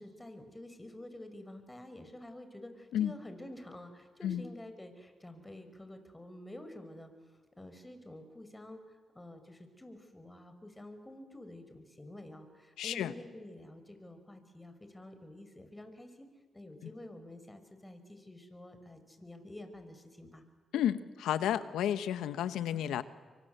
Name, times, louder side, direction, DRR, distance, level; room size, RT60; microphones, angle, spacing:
voice 1, 0.0-7.1 7.6-16.3 16.5-20.4 20.7-20.8 22.7-22.8, left 1 dB, 15° left, 8 dB, 5.8 m, -49 dB
voice 2, 12.8-13.1 20.7-23.0, left 10 dB, 90° left, 13 dB, 1.2 m, -32 dB
28.5 x 24.5 x 8.0 m, 1.4 s
supercardioid pair, 50°, 0 cm